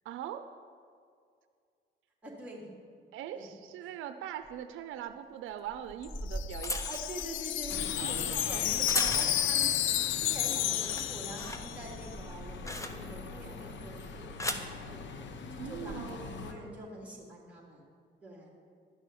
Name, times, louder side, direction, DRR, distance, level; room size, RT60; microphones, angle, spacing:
voice 1, 0.0-0.5 3.1-6.9 8.0-8.6 15.6-16.2, right 10 dB, 90° right, 9 dB, 0.5 m, -41 dB
voice 2, 2.2-2.7 3.3-3.5 6.9-15.1 15.5-17.8 18.2-18.5, right 1 dB, 5° right, -2 dB, 3.2 m, -45 dB
sound 1, 4.4-4.5 5.7-9.7 10.1-10.4 10.7-13.3 14.1-14.7 15.6-16.0, left 1 dB, 15° left, 1.1 m, -38 dB
Wind chime, 6.0-12.0, left 13 dB, 90° left, 0.5 m, -31 dB
Bus, 7.7-16.5, left 4 dB, 65° left, 1.0 m, -44 dB
11.5 x 6.2 x 9.2 m, 2.2 s
cardioid pair, 90°, 20 cm